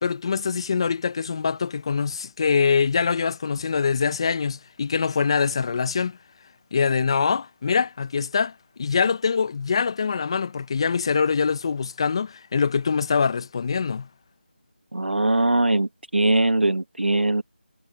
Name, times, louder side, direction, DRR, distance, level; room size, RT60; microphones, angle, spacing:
voice 1, 0.0-6.2 6.7-8.5 8.8-14.1, left 5 dB, 30° left, 1.2 m, -24 dB
voice 2, 14.9-17.4, right 2 dB, 80° right, 1.8 m, -21 dB
figure-of-eight pair, 165°, 6 cm